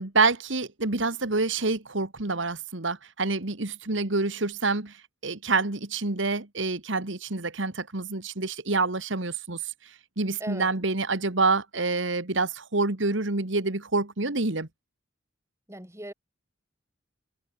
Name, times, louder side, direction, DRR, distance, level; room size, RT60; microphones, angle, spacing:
voice 1, 0.0-14.7, right 3 dB, 75° right, 1.9 m, -27 dB
voice 2, 15.7-16.1, right 1 dB, 15° right, 6.6 m, -38 dB
head